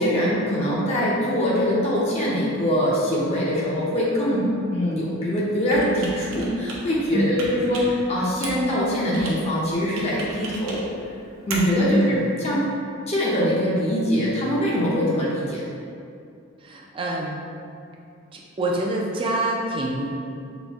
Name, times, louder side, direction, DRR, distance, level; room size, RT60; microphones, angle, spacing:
voice 1, 0.0-11.1 11.5-12.6 13.1-15.7, equal, 30° left, -6 dB, 0.6 m, -23 dB
Computer keyboard, 5.6-12.3, right 1 dB, 75° right, 0.7 m, -37 dB
voice 2, 11.9-12.2 16.6-17.5 18.3-20.1, right 1 dB, 25° right, -2 dB, 0.4 m, -25 dB
4.1 x 2.6 x 3.4 m, 2.5 s
head